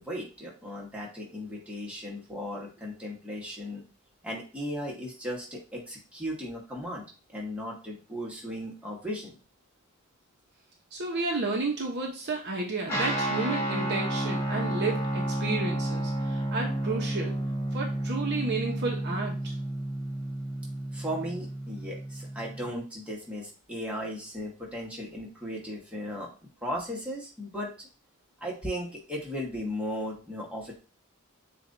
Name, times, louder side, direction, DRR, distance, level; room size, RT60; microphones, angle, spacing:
voice 1, 0.0-3.8 4.2-9.3 20.9-26.3 26.6-27.9 28.4-30.8, equal, 5° right, -3 dB, 1.3 m, -36 dB
voice 2, 10.9-17.4 17.7-19.5, right 3 dB, 55° right, 0 dB, 0.9 m, -32 dB
Guitar, 12.9-22.7, right 1 dB, 15° left, 1.6 m, -31 dB
7.2 x 2.5 x 2.7 m, 0.35 s
head